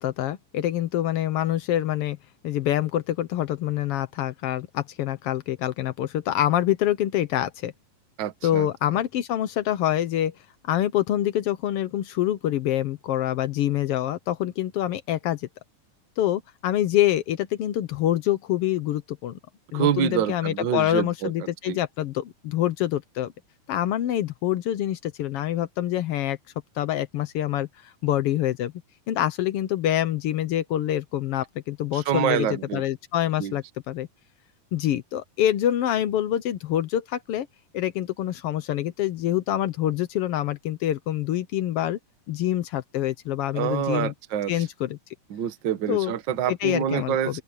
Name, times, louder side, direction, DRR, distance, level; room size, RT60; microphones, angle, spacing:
voice 1, 0.0-2.2 2.4-7.7 8.4-10.3 10.7-15.5 16.2-19.4 19.7-23.3 23.7-26.4 26.8-28.7 29.1-32.5 32.7-34.1 34.7-37.5 37.7-42.0 42.3-44.1 44.5-45.0 45.9-46.1 46.5-47.4, left 12 dB, 90° left, 1.2 m, -26 dB
voice 2, 8.2-8.7 19.7-21.8 31.9-32.8 33.4-33.5 43.5-44.7 45.3-47.4, right 9 dB, 60° right, 1.2 m, -27 dB
omnidirectional pair, 3.8 m